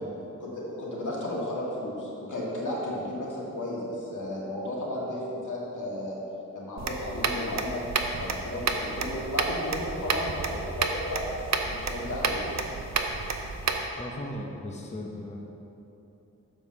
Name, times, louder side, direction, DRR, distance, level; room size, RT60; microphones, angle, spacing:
voice 1, 0.4-6.2 6.5-7.8 8.1-11.3 11.6-12.6, left 1 dB, 75° left, -5 dB, 2.0 m, -34 dB
sound 1, 6.8-13.9, right 4 dB, 60° right, 0.7 m, -31 dB
voice 2, 14.0-15.5, left 1 dB, 20° left, 0 dB, 0.7 m, -37 dB
7.2 x 5.2 x 6.4 m, 3.0 s
wide cardioid pair, 85°, 31 cm